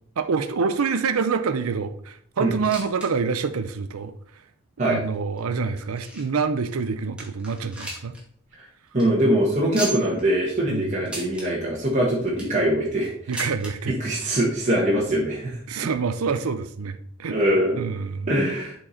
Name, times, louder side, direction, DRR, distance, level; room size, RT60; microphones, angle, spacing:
voice 1, 0.2-4.1 4.8-8.1 10.7-10.9 13.3-13.9 15.7-17.4 17.8-18.3, right 5 dB, 85° right, 10 dB, 0.5 m, -26 dB
sound 1, 2.5-3.1 3.4-3.5 4.1-4.2 5.0-6.4 6.8-6.9 7.2-8.2 8.5-8.6 8.9-9.0 9.7-10.2 11.0-11.5 12.1-12.6 13.3-13.7 14.7-14.8 15.0-15.1 15.9-16.0, right 2 dB, 5° right, 1.8 m, -35 dB
voice 2, 8.9-13.4 14.0-15.6 17.3-17.8 18.3-18.7, right 1 dB, 35° right, -6 dB, 1.4 m, -23 dB
7.5 x 4.6 x 4.2 m, 0.63 s
head